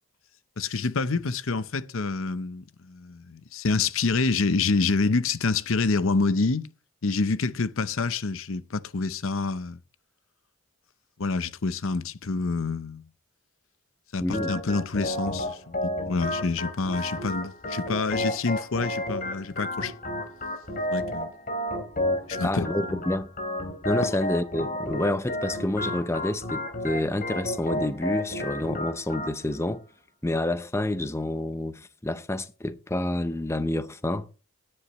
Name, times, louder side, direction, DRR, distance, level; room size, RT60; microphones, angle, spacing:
voice 1, 0.6-6.7 7.0-9.8 11.2-13.0 14.1-19.9 20.9-21.3 22.3-22.6 24.0-24.2, left 4 dB, 70° left, 0.7 m, -27 dB
voice 2, 14.2-14.5 22.4-23.3 23.8-29.8 30.2-34.3, left 1 dB, 10° left, 0.6 m, -28 dB
Organ, 14.3-29.3, left 1 dB, 40° left, 3.0 m, -32 dB
17.5 x 9.9 x 3.1 m
head